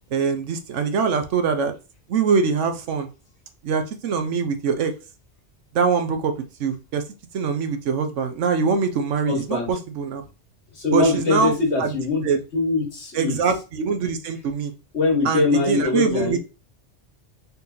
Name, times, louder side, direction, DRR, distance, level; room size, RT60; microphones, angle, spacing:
voice 1, 0.1-1.7 2.1-3.1 3.6-4.9 5.7-6.3 6.6-7.0 7.3-10.2 10.9-11.5 11.8-11.9 12.2-12.4 13.1-14.7 15.2-16.4, right 5 dB, 85° right, 7 dB, 1.1 m, -23 dB
voice 2, 9.3-9.7 10.8-12.2 12.5-13.4 14.9-16.4, left 3 dB, 70° left, 1 dB, 1.7 m, -22 dB
4.2 x 2.8 x 3.7 m, 0.30 s
omnidirectional pair, 1.2 m